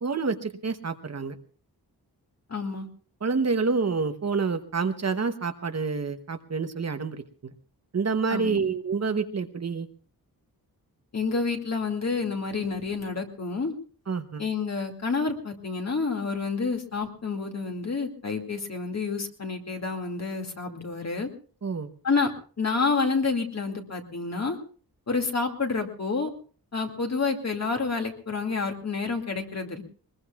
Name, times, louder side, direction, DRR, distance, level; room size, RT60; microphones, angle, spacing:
voice 1, 0.0-1.4 3.2-7.5 7.9-9.9 14.1-14.4 21.6-21.9, right 4 dB, 45° right, 8 dB, 1.0 m, -28 dB
voice 2, 2.5-2.9 8.3-8.7 11.1-13.7 14.4-21.3 22.0-22.3 22.6-24.6 25.1-26.3 26.7-29.8, left 4 dB, 45° left, 3 dB, 2.4 m, -29 dB
22.0 x 21.0 x 2.4 m, 0.40 s
wide cardioid pair, 135°, 37 cm